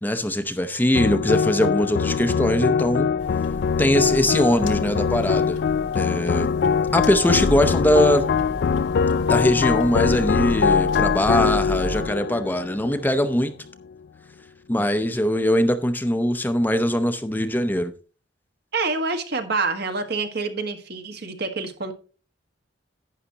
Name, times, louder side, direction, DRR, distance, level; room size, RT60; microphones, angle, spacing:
voice 1, 0.0-3.1 3.8-5.6 5.9-6.5 6.9-8.3 9.3-13.5 14.7-17.9, equal, 10° left, 0.7 m, -21 dB
sound 1, 1.0-13.4, left 6 dB, 60° left, 0.4 m, -23 dB
sound 2, 3.2-12.0, equal, 85° left, 1.8 m, -34 dB
voice 2, 18.7-21.9, right 3 dB, 60° right, 1.6 m, -27 dB
11.5 x 9.4 x 2.8 m
head